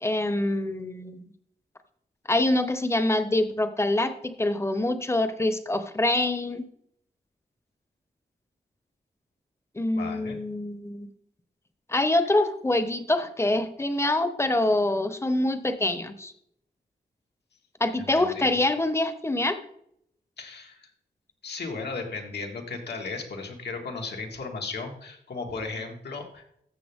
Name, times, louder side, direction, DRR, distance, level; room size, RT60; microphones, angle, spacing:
voice 1, 0.0-1.3 2.3-6.6 9.8-11.1 11.9-16.3 17.8-19.6, left 2 dB, 15° left, 10 dB, 0.7 m, -25 dB
voice 2, 10.0-10.4 18.0-18.6 20.4-20.9 21.4-26.4, left 4 dB, 90° left, 2 dB, 1.8 m, -35 dB
14.0 x 6.9 x 3.5 m, 0.72 s
wide cardioid pair, 150°, 17 cm